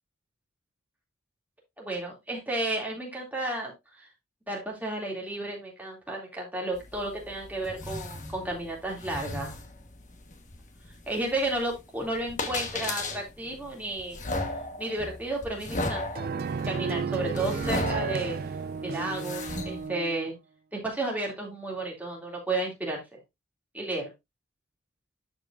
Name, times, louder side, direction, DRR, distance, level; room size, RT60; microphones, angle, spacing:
voice 1, 1.8-4.1 4.5-9.6 11.1-14.2 14.8-16.2 16.6-18.4 18.8-20.4 20.7-23.2 23.7-24.1, right 2 dB, 10° right, -1 dB, 2.4 m, -32 dB
sound 1, 6.7-19.9, left 2 dB, 35° left, 1.2 m, -36 dB
sound 2, 16.2-20.3, right 5 dB, 45° right, 0.4 m, -33 dB
12.0 x 4.9 x 2.5 m, 0.21 s
head